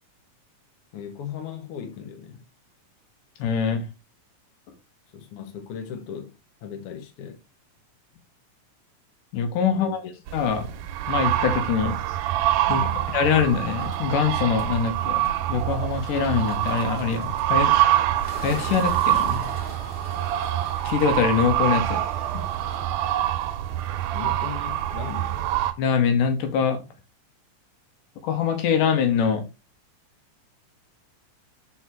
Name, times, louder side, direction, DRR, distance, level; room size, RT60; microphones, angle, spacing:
voice 1, 0.9-2.4 5.1-7.4 9.7-10.1 12.6-13.1 24.1-25.5, left 8 dB, 60° left, 1.7 m, -37 dB
voice 2, 3.4-3.8 9.3-10.0 10.3-10.7 11.1-12.0 12.2-12.3 12.7-12.9 13.1-18.0 18.4-19.4 20.8-22.0 25.8-26.8 28.2-29.4, left 6 dB, 90° left, 2.7 m, -24 dB
sound 1, 10.3-25.7, right 13 dB, 80° right, 2.2 m, -25 dB
Bird, 13.4-22.8, left 1 dB, 25° left, 1.4 m, -45 dB
4.9 x 4.6 x 4.3 m
omnidirectional pair, 3.7 m